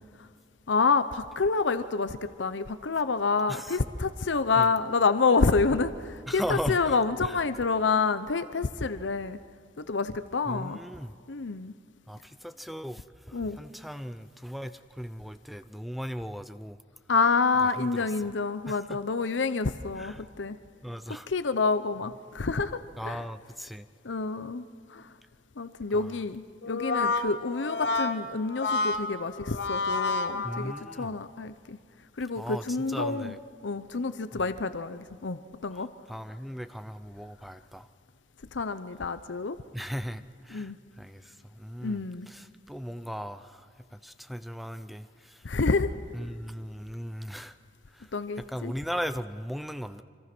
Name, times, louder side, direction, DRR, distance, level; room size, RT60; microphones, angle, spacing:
voice 1, 0.7-9.4 9.8-10.8 11.3-11.7 13.3-13.6 17.1-20.6 21.3-23.2 24.0-25.1 25.6-31.8 32.2-33.3 33.6-35.9 38.5-39.6 40.5-40.8 41.8-42.3 45.4-45.9 48.1-48.7, left 4 dB, 85° left, 12 dB, 0.8 m, -28 dB
voice 2, 3.5-3.8 4.5-4.7 6.3-7.0 7.2-7.4 10.5-11.1 12.1-16.8 17.6-18.3 18.7-19.0 20.0-20.3 20.8-21.3 23.0-23.9 25.9-26.2 30.4-31.2 32.4-33.4 34.3-34.4 35.7-37.9 39.7-45.5 46.1-47.6 47.9-50.0, equal, ahead, 12 dB, 0.6 m, -38 dB
Brass instrument, 26.6-31.1, left 3 dB, 70° left, 1.4 m, -30 dB
26.0 x 25.5 x 6.1 m, 2.1 s
head